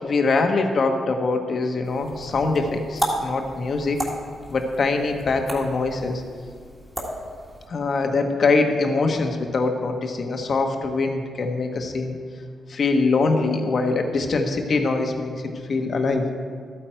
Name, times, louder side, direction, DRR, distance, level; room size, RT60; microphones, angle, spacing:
voice 1, 0.0-4.0 4.5-6.2 7.7-12.2 12.7-15.3 15.7-16.2, left 3 dB, 45° left, 4 dB, 1.1 m, -23 dB
sound 1, 1.8-7.7, right 1 dB, 10° right, 1.8 m, -33 dB
13.5 x 8.8 x 4.5 m, 2.1 s
wide cardioid pair, 155°, 0 cm